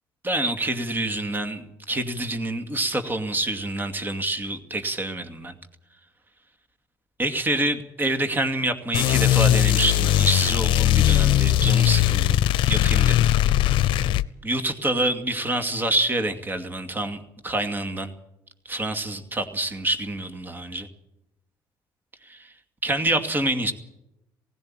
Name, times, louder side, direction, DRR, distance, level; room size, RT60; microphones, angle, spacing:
voice 1, 0.2-5.6 7.2-12.4 12.6-13.3 14.4-18.1 18.7-20.9 22.2-22.5 22.8-23.7, right 1 dB, 25° right, 8 dB, 2.5 m, -27 dB
sound 1, 8.9-14.2, left 13 dB, 75° left, 0.6 m, -19 dB
18.0 x 16.0 x 9.0 m, 0.88 s
cardioid pair, 90°, 9 cm